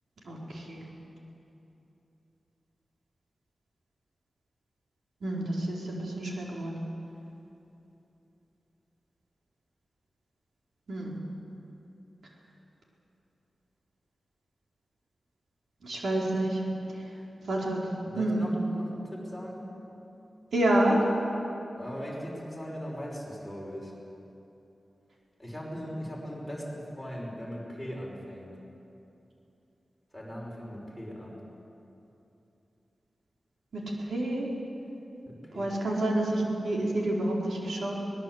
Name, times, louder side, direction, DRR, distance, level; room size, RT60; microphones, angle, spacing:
voice 1, 0.2-0.9 5.2-6.8 10.9-11.2 15.8-16.6 17.5-17.9 18.1-18.4 20.5-21.0 33.7-34.5 35.5-38.0, right 1 dB, 85° right, -3 dB, 4.4 m, -28 dB
voice 2, 18.0-19.8 21.8-23.9 25.4-28.5 30.1-31.4 35.3-35.8, equal, ahead, -3 dB, 5.7 m, -39 dB
23.0 x 20.0 x 8.1 m, 2.9 s
wide cardioid pair, 150°, 0 cm